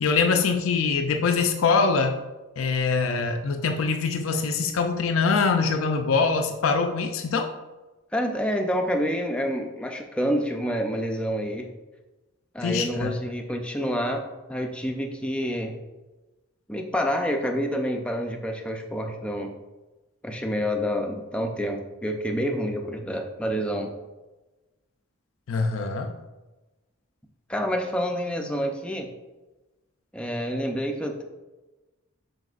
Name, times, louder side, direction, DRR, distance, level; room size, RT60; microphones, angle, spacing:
voice 1, 0.0-2.2 2.6-7.5 12.6-13.2 25.5-26.1, left 4 dB, 90° left, 5 dB, 0.5 m, -23 dB
voice 2, 8.1-11.7 12.5-14.2 14.5-15.8 16.7-19.5 20.2-23.9 27.5-29.1 30.1-31.2, equal, 5° left, 2 dB, 0.5 m, -28 dB
7.8 x 5.4 x 2.5 m, 1.1 s
head